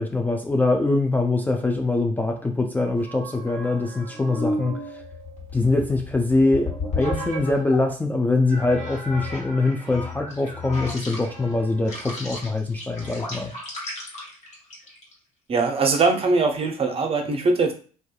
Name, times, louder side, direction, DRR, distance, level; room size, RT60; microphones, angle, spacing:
voice 1, 0.0-5.0 5.5-13.5, left 2 dB, 10° left, 2 dB, 0.3 m, -23 dB
sound 1, 3.0-7.9 8.5-15.1, left 2 dB, 40° left, 1.2 m, -34 dB
voice 2, 15.5-17.7, right 3 dB, 35° right, 5 dB, 0.6 m, -21 dB
2.5 x 2.3 x 2.3 m, 0.40 s
hypercardioid pair, 65°, 18 cm